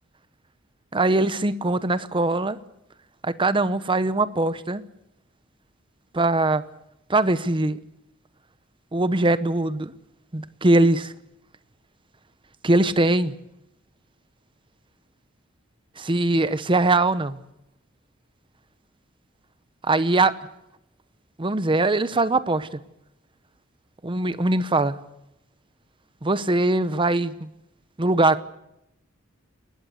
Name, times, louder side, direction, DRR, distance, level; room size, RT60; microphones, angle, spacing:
voice 1, 0.9-2.6 3.2-4.8 6.1-6.6 7.1-7.8 8.9-9.9 10.3-11.1 12.6-13.3 16.0-17.4 19.8-20.3 21.4-22.8 24.0-25.0 26.2-27.5 28.0-28.4, right 2 dB, 25° right, 0.9 m, -21 dB
21.5 x 19.5 x 8.0 m
head